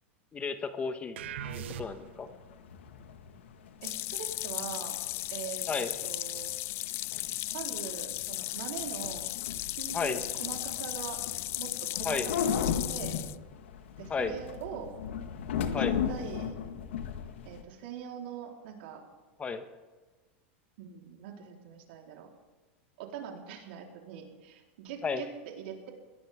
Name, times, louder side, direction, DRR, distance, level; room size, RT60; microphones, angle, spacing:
voice 1, 0.3-1.2 1.5-2.3 5.7-6.1 9.9-10.2 12.0-12.3 14.1-14.3 15.7-16.0 19.4-19.6 25.0-25.2, left 5 dB, 20° left, 9 dB, 1.3 m, -33 dB
sound 1, 1.2-17.6, left 7 dB, 85° left, 1.7 m, -37 dB
sound 2, 1.2-2.3, right 10 dB, 85° right, 1.0 m, -40 dB
sound 3, 3.8-13.4, left 17 dB, 40° left, 0.4 m, -36 dB
voice 2, 3.8-5.0 5.3-6.5 7.5-9.3 9.8-11.2 11.6-12.5 12.9-13.2 14.0-14.9 16.1-16.6 17.4-19.0 20.8-22.3 23.0-25.9, right 8 dB, 70° right, 0 dB, 4.1 m, -42 dB
21.5 x 18.0 x 3.7 m, 1.3 s
supercardioid pair, 130°, 6 cm